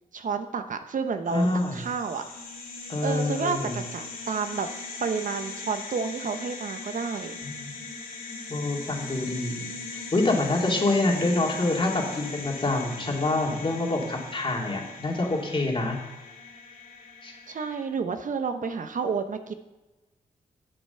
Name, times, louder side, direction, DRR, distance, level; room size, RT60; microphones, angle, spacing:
voice 1, 0.1-1.5 1.7-2.3 3.0-4.7 5.0-7.4 17.3-19.5, right 5 dB, 60° right, 8 dB, 0.8 m, -30 dB
sound 1, 1.3-17.8, left 4 dB, 70° left, 2.8 m, -40 dB
voice 2, 1.3-1.8 2.9-3.7 7.4-7.7 8.5-16.0 17.2-17.3, left 2 dB, 35° left, 0 dB, 2.5 m, -26 dB
7.8 x 7.7 x 5.7 m, 1.1 s
cardioid pair, 60°, 15 cm